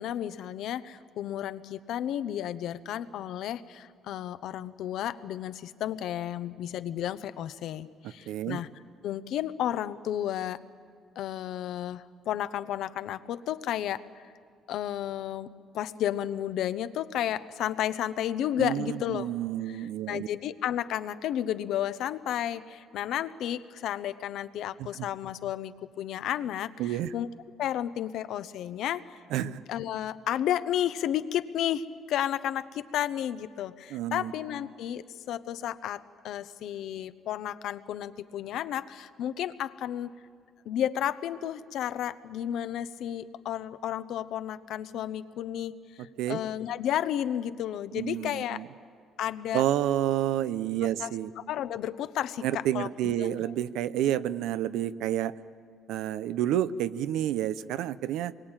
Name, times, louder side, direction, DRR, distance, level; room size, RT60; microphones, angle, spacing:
voice 1, 0.0-8.7 9.0-10.6 11.2-14.2 14.7-15.5 15.7-19.3 19.7-27.3 27.6-40.1 40.6-48.6 49.2-49.6 51.0-51.1 51.5-53.3, left 11 dB, 65° left, 13 dB, 0.8 m, -32 dB
voice 2, 8.3-8.6 18.6-20.3 24.8-25.1 26.8-27.1 29.3-29.6 33.9-34.3 46.2-46.4 47.9-48.7 49.5-51.3 52.4-55.3 55.9-58.3, right 12 dB, 85° right, 15 dB, 0.7 m, -29 dB
26.0 x 22.5 x 9.0 m, 2.1 s
cardioid pair, 160°, 0 cm